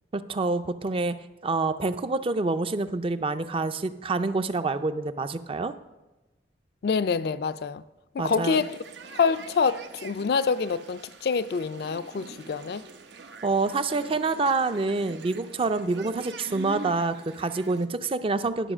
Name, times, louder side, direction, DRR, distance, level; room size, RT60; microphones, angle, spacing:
voice 1, 0.1-1.2 1.4-5.7 8.2-8.6 13.4-18.7, right 3 dB, 30° right, 0.4 m, -27 dB
voice 2, 6.8-7.8 8.1-8.8 9.1-12.8, left 5 dB, 60° left, 0.4 m, -26 dB
sound 1, 8.2-17.9, right 3 dB, 90° right, 0.8 m, -44 dB
11.0 x 5.7 x 6.1 m
head